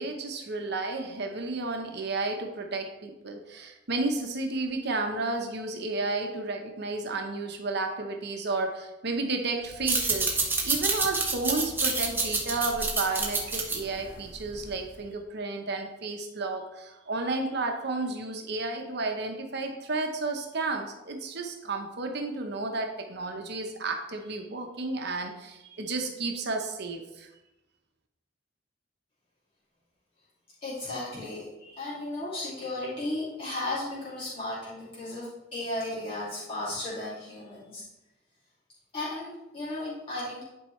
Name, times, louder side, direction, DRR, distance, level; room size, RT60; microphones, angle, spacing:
voice 1, 0.0-27.3, right 3 dB, 60° right, 4 dB, 1.0 m, -32 dB
sound 1, 9.7-14.9, right 3 dB, 10° right, 0.9 m, -28 dB
voice 2, 30.6-37.8 38.9-40.4, left 1 dB, 30° left, -9 dB, 2.6 m, -35 dB
11.0 x 4.6 x 3.2 m, 0.98 s
head